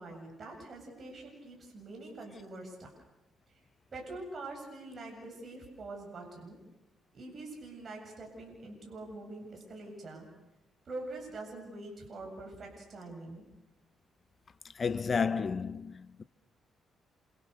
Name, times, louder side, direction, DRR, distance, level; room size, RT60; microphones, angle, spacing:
voice 1, 0.0-2.9 3.9-6.6 7.1-10.3 10.8-13.4, right 2 dB, 45° right, 8.0 m, -44 dB
voice 2, 14.7-16.2, left 5 dB, 40° left, 1.0 m, -31 dB
29.0 x 28.5 x 6.8 m
cardioid pair, 95°, 0 cm